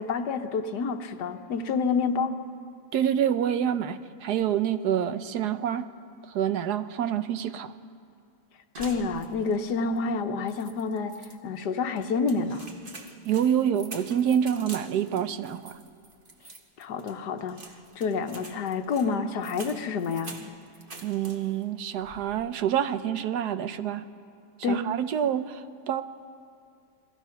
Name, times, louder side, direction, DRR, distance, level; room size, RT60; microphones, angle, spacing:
voice 1, 0.0-2.4 8.8-12.7 16.8-17.6 18.0-20.4 24.6-24.9, left 4 dB, 80° left, 7 dB, 1.6 m, -28 dB
voice 2, 2.9-5.9 6.3-7.7 13.2-15.8 21.0-24.1 24.7-26.0, right 9 dB, 80° right, 11 dB, 1.3 m, -27 dB
sound 1, 8.8-9.7 10.0-10.1 10.5-11.4 12.0-21.7 22.0-22.5, right 2 dB, 35° right, 1.5 m, -46 dB
28.5 x 21.0 x 5.8 m, 2.3 s
omnidirectional pair, 1.8 m